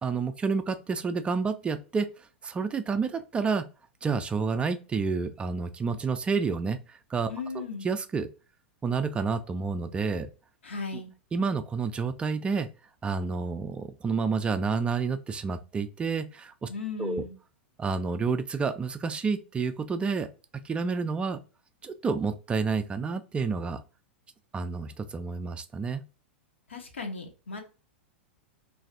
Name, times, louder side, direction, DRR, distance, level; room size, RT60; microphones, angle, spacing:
voice 1, 0.0-3.7 4.0-8.3 8.8-10.3 11.3-12.7 13.0-16.7 17.0-17.2 17.8-20.3 20.5-21.4 21.8-23.8 24.5-26.0, right 5 dB, 15° right, 0.3 m, -29 dB
voice 2, 7.3-7.9 10.6-11.1 16.7-17.3 26.7-27.6, left 4 dB, 80° left, 0.8 m, -36 dB
3.1 x 2.6 x 2.5 m
figure-of-eight pair, 100°, 6 cm